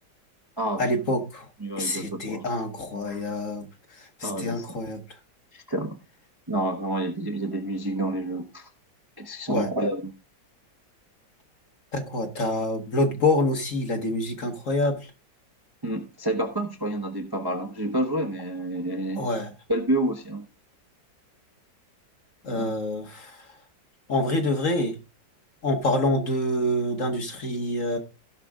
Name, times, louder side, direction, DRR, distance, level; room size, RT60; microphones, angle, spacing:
voice 1, 0.8-1.5 1.8-3.7 4.0-5.0 9.5-9.7 11.9-15.1 19.2-19.5 22.4-23.5 24.1-25.0 25.6-28.0, left 1 dB, 45° left, 1.8 m, -26 dB
voice 2, 1.6-2.4 3.1-3.2 4.2-4.8 5.5-6.0 6.5-8.7 9.2-10.1 15.8-19.3 19.7-20.5 22.5-22.7, right 1 dB, 15° right, 0.9 m, -29 dB
16.5 x 5.9 x 3.7 m
omnidirectional pair, 2.0 m